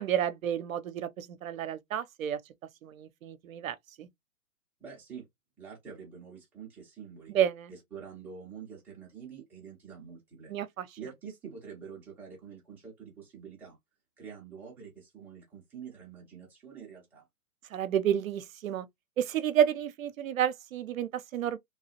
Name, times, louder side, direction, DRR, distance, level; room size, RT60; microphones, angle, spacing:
voice 1, 0.0-2.4 2.8-4.1 7.3-7.7 10.5-10.9 17.7-18.9 19.2-21.6, right 10 dB, 65° right, 0.6 m, -30 dB
voice 2, 4.8-5.3 5.6-7.3 7.7-10.5 11.0-13.8 14.2-17.3, right 6 dB, 5° right, 0.4 m, -46 dB
3.1 x 2.3 x 2.8 m
figure-of-eight pair, 125°, 45 cm